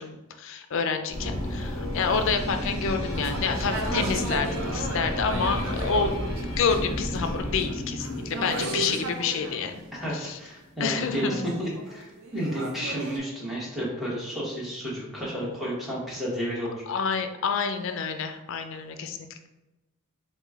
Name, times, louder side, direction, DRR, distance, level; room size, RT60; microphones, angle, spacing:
voice 1, 0.0-6.1 6.6-9.8 10.1-10.4 10.8-11.4 16.9-19.2, left 5 dB, 60° left, 7 dB, 0.4 m, -28 dB
sound 1, 1.1-10.4, left 1 dB, 25° left, 1.3 m, -32 dB
sound 2, 3.1-9.6 11.0-13.2, right 2 dB, 65° right, 0.6 m, -35 dB
voice 2, 9.9-16.8, equal, ahead, -7 dB, 1.1 m, -32 dB
4.8 x 2.2 x 3.5 m, 1.0 s
head